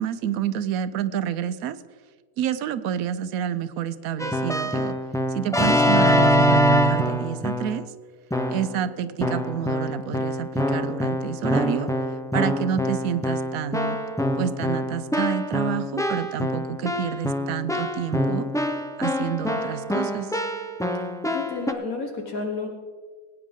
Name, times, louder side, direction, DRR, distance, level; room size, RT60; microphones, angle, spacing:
voice 1, 0.0-1.8 2.4-5.0 5.3-7.8 8.5-11.9 12.3-14.0 14.4-18.5 19.0-20.3, right 9 dB, 80° right, 13 dB, 1.1 m, -28 dB
Keyboard (musical), 4.2-7.9 8.3-8.8 9.2-21.7, equal, 5° left, 0.3 m, -24 dB
voice 2, 21.0-22.7, left 3 dB, 75° left, 3 dB, 1.8 m, -32 dB
20.5 x 9.2 x 3.7 m, 1.5 s
omnidirectional pair, 1.5 m